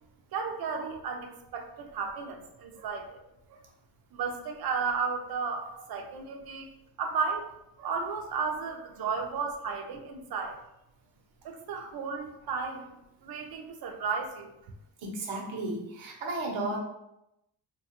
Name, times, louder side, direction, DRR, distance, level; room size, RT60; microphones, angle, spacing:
voice 1, 0.3-3.2 3.5-3.6 4.1-6.7 7.0-7.5 7.8-10.6 11.4-14.5, right 5 dB, 55° right, 4 dB, 0.5 m, -34 dB
voice 2, 15.0-16.8, right 2 dB, 85° right, 1 dB, 0.8 m, -34 dB
2.9 x 2.3 x 2.8 m, 0.85 s
cardioid pair, 130°, 46 cm